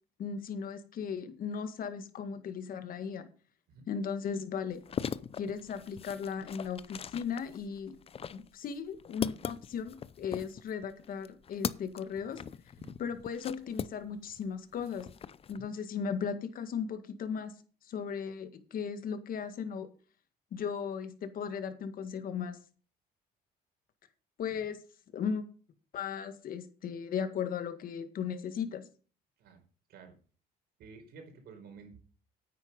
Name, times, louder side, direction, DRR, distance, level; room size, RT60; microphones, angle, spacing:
voice 1, 0.2-3.3 3.9-4.8 5.4-8.0 8.3-12.4 13.0-15.1 15.5-17.5 17.9-19.9 20.5-22.6 24.4-24.8 25.1-25.4 25.9-28.8, left 6 dB, 55° left, 9 dB, 1.8 m, -36 dB
sound 1, 4.7-14.4 14.7-15.6, left 7 dB, 35° left, 0.6 m, -40 dB
voice 2, 30.8-32.0, right 4 dB, 70° right, 5 dB, 4.5 m, -51 dB
9.6 x 8.9 x 5.4 m, 0.39 s
cardioid pair, 110°, 17 cm